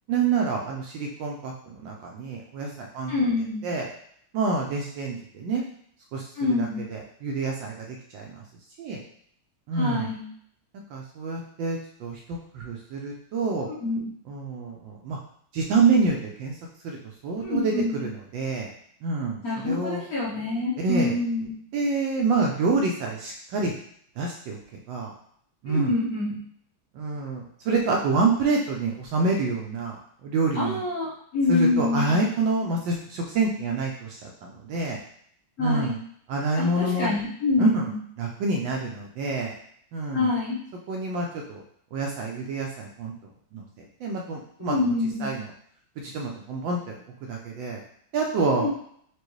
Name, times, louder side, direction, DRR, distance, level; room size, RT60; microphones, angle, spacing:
voice 1, 0.1-3.1 3.6-3.9 4.3-5.6 6.1-6.3 6.6-8.4 8.8-9.0 9.7-10.1 10.9-13.7 14.3-15.2 15.5-16.5 16.8-17.0 17.2-17.7 18.0-18.7 19.0-20.0 20.8-21.1 21.7-23.8 24.2-24.6 24.9-25.1 25.6-25.9 26.9-30.8 31.5-35.0 35.6-36.0 36.3-37.2 37.6-37.9 38.2-39.5 39.9-40.3 40.9-41.6 41.9-43.1 43.5-44.9 45.2-45.5 46.0-47.0 47.3-47.8 48.1-48.7, right 3 dB, 75° right, 0 dB, 1.2 m, -27 dB
voice 2, 3.1-3.7 6.4-6.8 9.8-10.2 13.7-14.0 17.4-18.0 19.4-21.5 25.7-26.4 30.5-32.1 35.6-36.0 36.6-38.0 40.1-40.6 44.6-45.3 48.5-48.7, left 3 dB, 55° left, -7 dB, 1.2 m, -26 dB
4.6 x 2.5 x 3.1 m, 0.64 s
omnidirectional pair, 2.3 m